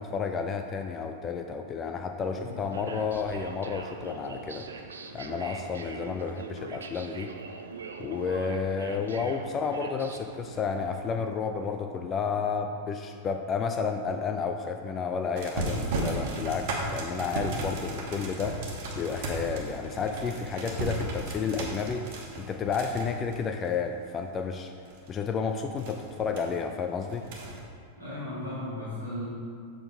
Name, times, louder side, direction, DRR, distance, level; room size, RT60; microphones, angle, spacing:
voice 1, 0.0-4.7 5.1-7.3 8.0-18.6 18.9-22.1 22.4-24.7 25.1-27.3, left 5 dB, 25° left, 5 dB, 0.3 m, -31 dB
voice 2, 2.3-2.6 28.0-29.3, left 1 dB, 85° right, -12 dB, 1.5 m, -36 dB
sound 1, 2.4-11.0, right 4 dB, 70° right, 0.4 m, -42 dB
sound 2, 15.4-24.2 24.7-25.2 25.8-26.4 27.0-27.6, right 2 dB, 50° right, 1.1 m, -35 dB
6.9 x 3.8 x 4.8 m, 2.3 s
figure-of-eight pair, 90°, 0 cm